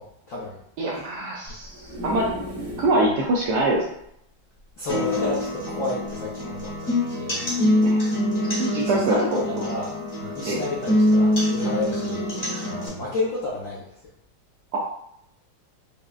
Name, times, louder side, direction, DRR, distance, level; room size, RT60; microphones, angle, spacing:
voice 1, 0.0-0.6 4.8-7.5 8.8-12.3 12.6-13.8, left 3 dB, 75° left, -6 dB, 0.7 m, -31 dB
voice 2, 0.8-2.3 2.8-3.9 7.8-8.0 8.5-9.6 10.4-10.6 14.7-14.8, right 2 dB, 75° right, -3 dB, 0.9 m, -24 dB
sound 1, 1.5-3.0 3.5-3.6 3.7-3.8 5.0-5.9 6.6-6.8, equal, 30° right, 1.0 m, -36 dB
sound 2, 4.9-12.9, left 1 dB, 35° left, 1.0 m, -24 dB
5.0 x 2.1 x 2.3 m, 0.75 s
omnidirectional pair, 2.2 m